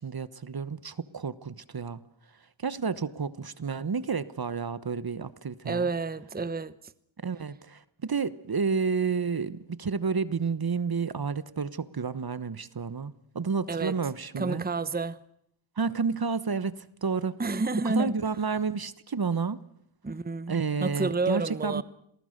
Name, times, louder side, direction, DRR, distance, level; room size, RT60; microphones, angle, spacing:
voice 1, 0.0-2.0 2.6-5.9 7.2-14.7 15.8-17.4 17.8-19.6 20.5-21.8, right 5 dB, 50° right, 1.2 m, -30 dB
voice 2, 5.6-6.7 13.7-13.9 14.4-15.2 17.4-18.2 20.0-21.8, right 3 dB, 20° right, 0.9 m, -29 dB
27.5 x 19.0 x 6.6 m
cardioid pair, 55°, 47 cm